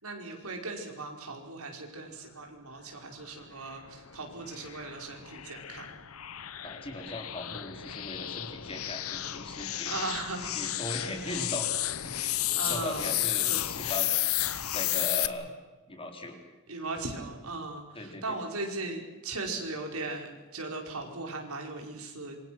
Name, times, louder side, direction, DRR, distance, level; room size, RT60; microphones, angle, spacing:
voice 1, 0.0-5.9 9.6-10.5 11.3-11.5 12.5-13.2 13.4-13.6 15.2-15.4 16.7-22.4, right 3 dB, 85° right, 2 dB, 5.1 m, -38 dB
sound 1, 3.7-15.3, left 14 dB, 75° left, 1.1 m, -33 dB
voice 2, 6.6-10.0 10.5-11.8 12.0-14.5 14.7-15.5 15.9-16.4 17.9-18.4, left 2 dB, 25° left, 3 dB, 4.0 m, -39 dB
27.0 x 24.0 x 6.2 m, 1.2 s
head